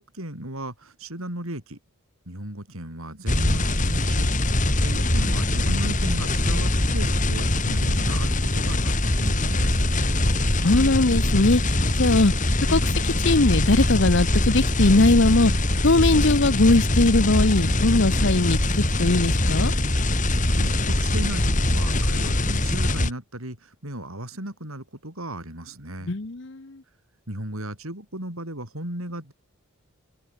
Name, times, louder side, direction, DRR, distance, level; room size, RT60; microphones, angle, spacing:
voice 1, 0.0-1.8 2.3-4.3 4.8-9.8 20.6-26.1 27.3-29.3, right 1 dB, 80° right, 7.8 m, -35 dB
sound 1, 3.3-23.1, left 1 dB, 35° left, 3.1 m, -22 dB
voice 2, 10.6-18.6 19.0-19.7 26.0-26.8, left 2 dB, 55° left, 1.0 m, -20 dB
head